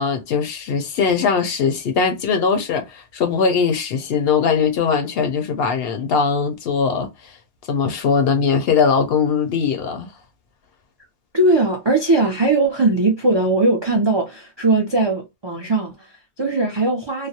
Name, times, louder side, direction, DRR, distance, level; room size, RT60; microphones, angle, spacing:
voice 1, 0.0-7.4 7.7-10.1, left 5 dB, 65° left, 0.7 m, -20 dB
voice 2, 11.3-17.3, right 2 dB, 45° right, 0.3 m, -19 dB
2.4 x 2.0 x 2.6 m
omnidirectional pair, 1.2 m